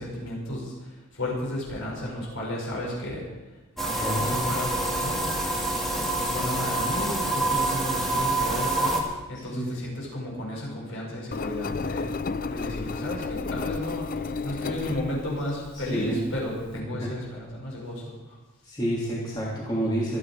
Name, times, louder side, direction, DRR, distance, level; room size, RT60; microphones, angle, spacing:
voice 1, 0.0-3.2 3.8-5.2 5.6-9.0 9.3-12.1 12.5-18.4, left 1 dB, 65° left, -3 dB, 6.3 m, -33 dB
sound 1, 3.8-9.0, right 2 dB, ahead, 2.2 m, -26 dB
voice 2, 4.0-4.4 9.3-9.8 15.7-16.2 17.0-17.1 18.7-20.2, right 1 dB, 20° left, -5 dB, 2.9 m, -29 dB
Engine, 11.3-16.8, left 4 dB, 40° left, 0.4 m, -33 dB
25.0 x 9.8 x 4.8 m, 1.1 s
head